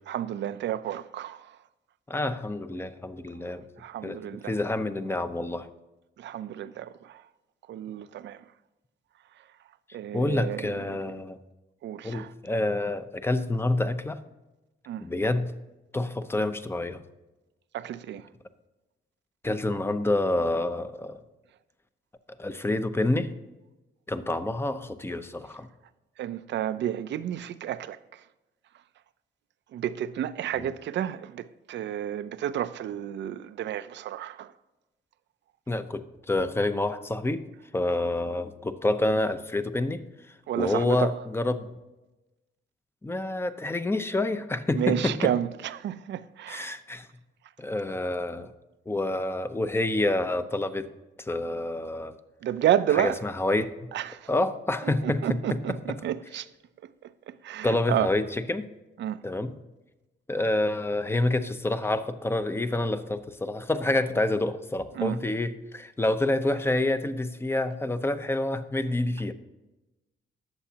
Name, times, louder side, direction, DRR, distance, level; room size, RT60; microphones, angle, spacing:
voice 1, 0.1-1.6 3.8-4.5 6.2-7.2 7.7-8.4 9.9-11.0 11.8-12.3 14.9-15.1 17.7-18.3 26.2-28.2 29.7-34.5 40.5-41.1 44.7-46.8 52.4-53.2 53.9-54.3 54.8-56.5 56.8-58.1 59.0-59.2 64.9-65.2, right 11 dB, 65° right, 0.5 m, -31 dB
voice 2, 2.1-3.6 4.0-5.7 10.1-11.4 12.0-14.2 15.0-15.5 15.9-17.0 19.4-21.2 22.4-23.3 24.1-25.7 30.6-30.7 35.7-37.4 37.7-40.0 40.6-41.7 43.0-45.3 46.5-47.1 47.6-48.5 48.9-50.9 51.2-52.1 53.0-53.7 54.3-55.2 57.6-58.7 59.2-59.5 60.3-69.3, left 2 dB, 10° left, 0.7 m, -28 dB
20.0 x 7.1 x 2.9 m
cardioid pair, 90°, 20 cm